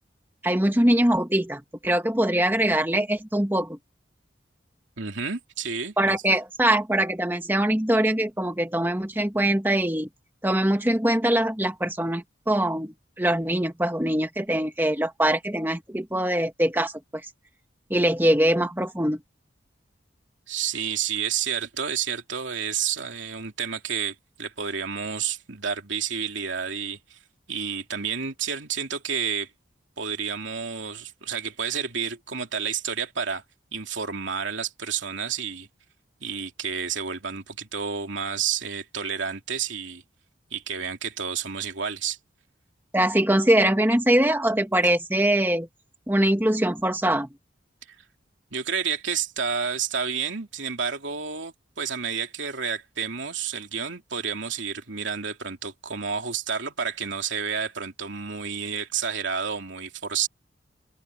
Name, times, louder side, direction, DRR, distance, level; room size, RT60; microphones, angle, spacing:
voice 1, 0.4-3.8 6.0-10.1 10.4-16.9 17.9-19.2 42.9-45.7 46.1-47.3, right 1 dB, 10° right, 1.5 m, -23 dB
voice 2, 5.0-6.2 20.5-27.2 27.5-29.5 30.0-33.4 33.7-35.7 36.2-40.0 40.5-42.2 48.5-60.3, right 6 dB, 75° right, 2.8 m, -30 dB
open air
head